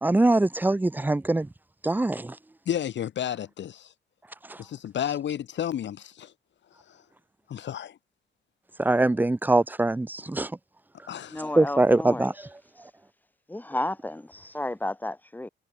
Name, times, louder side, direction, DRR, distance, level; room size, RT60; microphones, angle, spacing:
voice 1, 0.0-1.5 1.8-2.4 4.5-4.6 8.8-10.5 11.6-12.3, right 2 dB, 10° right, 0.8 m, -23 dB
voice 2, 2.7-3.9 4.6-6.3 7.5-8.0 11.1-11.4, left 10 dB, 70° left, 1.2 m, -32 dB
voice 3, 11.3-12.3 13.5-15.5, left 1 dB, 10° left, 2.2 m, -32 dB
wide cardioid pair, 135°, 20 cm